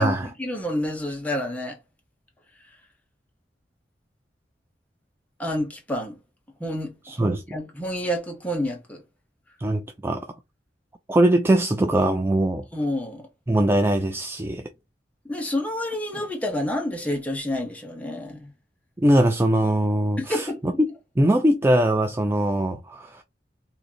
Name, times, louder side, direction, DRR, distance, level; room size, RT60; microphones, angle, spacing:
voice 1, 0.0-1.8 5.4-6.2 6.6-9.0 12.7-13.2 15.2-18.5 20.2-20.6, left 1 dB, 10° left, 1.0 m, -29 dB
voice 2, 7.1-7.4 9.6-10.3 11.1-12.7 13.5-14.7 19.0-20.9 21.2-23.2, right 1 dB, 15° right, 0.4 m, -21 dB
3.8 x 2.8 x 2.8 m
head